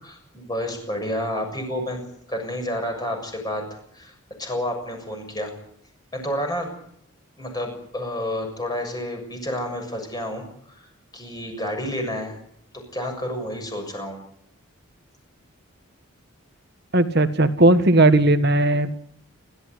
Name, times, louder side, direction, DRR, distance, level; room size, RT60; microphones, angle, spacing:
voice 1, 0.0-2.0 2.3-3.7 3.9-4.1 4.4-5.5 6.1-6.7 7.4-12.4 12.9-14.2, left 1 dB, 20° left, 3 dB, 6.9 m, -30 dB
voice 2, 16.9-18.9, right 2 dB, 45° right, 10 dB, 1.6 m, -17 dB
29.5 x 14.0 x 9.8 m, 0.71 s
head